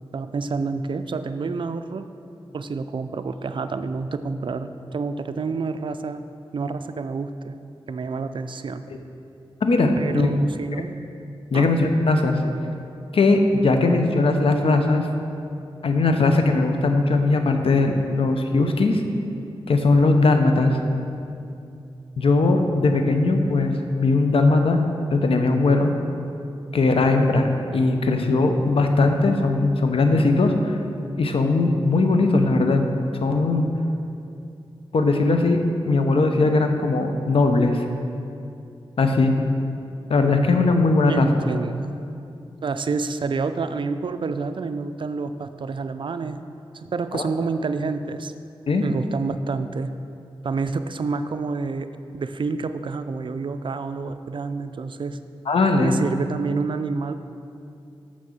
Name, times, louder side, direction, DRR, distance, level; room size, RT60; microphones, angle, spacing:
voice 1, 0.1-2.1 2.5-6.2 6.5-7.5 7.9-8.8 10.0-11.0 11.5-11.7 41.1-42.0 42.6-46.4 46.7-48.3 48.8-49.9 50.4-55.2 55.8-57.1, right 4 dB, 60° right, 10 dB, 0.4 m, -28 dB
voice 2, 9.6-10.3 11.5-12.4 13.1-15.1 15.8-19.0 19.7-20.8 22.2-23.7 24.0-24.8 25.1-25.9 26.7-27.5 27.7-30.8 31.2-32.8 33.2-33.7 34.9-35.6 35.8-37.8 39.0-39.3 40.1-41.3 47.1-47.2 48.7-48.8 55.5-56.0, left 3 dB, 75° left, 5 dB, 0.8 m, -19 dB
6.3 x 6.2 x 7.2 m, 2.6 s
wide cardioid pair, 70°, 10 cm